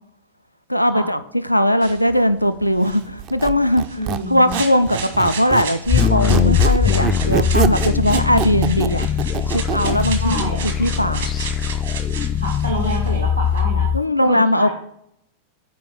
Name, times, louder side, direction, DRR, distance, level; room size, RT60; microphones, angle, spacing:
voice 1, 0.7-1.2 1.5-4.0 4.3-9.1 9.5-11.3 13.9-14.7, equal, 90° left, 11 dB, 0.4 m, -19 dB
sound 1, 1.8-13.6, right 5 dB, 65° right, 1.6 m, -33 dB
Squeak, 3.2-5.7 6.0-10.1, right 10 dB, 40° right, 0.4 m, -25 dB
voice 2, 4.0-4.6 10.2-10.6 12.3-13.9 14.2-14.7, right 1 dB, 85° right, -2 dB, 1.3 m, -27 dB
sound 2, 5.8-14.0, left 8 dB, 25° left, 0.3 m, -20 dB
6.9 x 4.8 x 5.9 m, 0.74 s
figure-of-eight pair, 90°, 0 cm